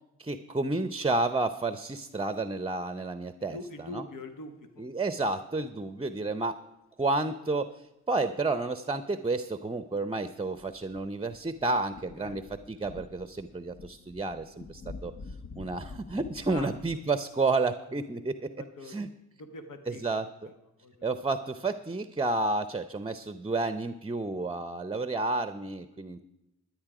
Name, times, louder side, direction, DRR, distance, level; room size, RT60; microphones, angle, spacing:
voice 1, 0.2-4.0 4.8-6.6 7.0-7.7 8.1-15.1 15.6-18.5 18.8-19.1 19.9-20.3 21.0-26.2, right 3 dB, 15° right, 12 dB, 0.7 m, -31 dB
voice 2, 3.4-4.9 12.2-12.4 16.5-16.7 18.6-18.9 19.4-20.0 20.8-21.1, left 2 dB, 75° left, 7 dB, 1.3 m, -43 dB
sound 1, 10.6-17.0, left 4 dB, 40° left, 0.8 m, -47 dB
12.5 x 10.0 x 4.9 m, 0.92 s
supercardioid pair, 45°, 32 cm